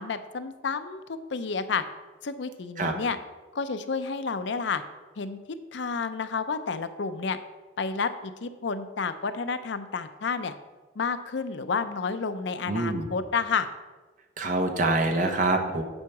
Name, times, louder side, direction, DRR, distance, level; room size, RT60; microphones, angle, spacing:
voice 1, 0.0-1.8 2.2-3.2 3.5-4.8 5.2-5.4 5.7-7.4 7.8-10.5 11.0-13.7, left 5 dB, 70° left, 11 dB, 0.5 m, -30 dB
voice 2, 12.7-13.1 14.4-15.8, right 2 dB, 40° right, 4 dB, 1.0 m, -25 dB
8.9 x 4.7 x 5.9 m, 1.3 s
head